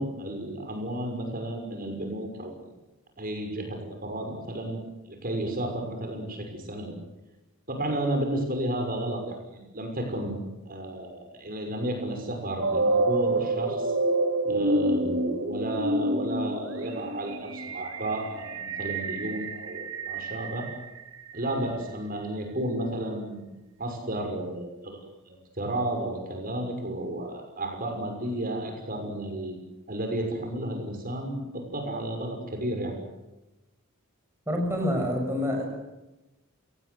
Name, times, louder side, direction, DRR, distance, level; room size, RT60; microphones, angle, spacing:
voice 1, 0.0-2.6 3.2-4.8 5.1-6.9 7.7-13.9 14.4-20.7 21.3-23.5 23.8-25.0 25.3-29.6 29.9-33.0, right 1 dB, 45° right, 4 dB, 6.1 m, -32 dB
sound 1, 12.6-21.6, right 2 dB, 70° right, 2.8 m, -28 dB
voice 2, 34.5-35.6, left 1 dB, 10° right, 1 dB, 6.5 m, -27 dB
29.0 x 18.5 x 8.1 m, 1.0 s
head